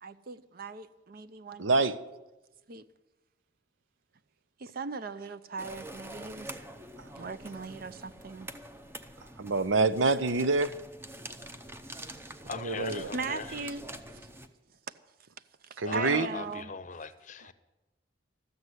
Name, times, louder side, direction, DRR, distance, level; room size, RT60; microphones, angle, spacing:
voice 1, 0.0-1.7 2.7-2.9 4.6-6.6 7.2-8.5 13.1-13.8 15.7-16.7, right 4 dB, 50° right, 0.5 m, -39 dB
voice 2, 1.6-2.0 9.4-10.7 12.6-13.1 15.8-16.3, right 3 dB, 85° right, 0.7 m, -26 dB
sound 1, 5.6-14.5, right 1 dB, 15° right, 0.7 m, -45 dB
voice 3, 12.5-13.7 15.9-17.5, left 5 dB, 40° left, 0.7 m, -39 dB
13.5 x 7.8 x 9.8 m
head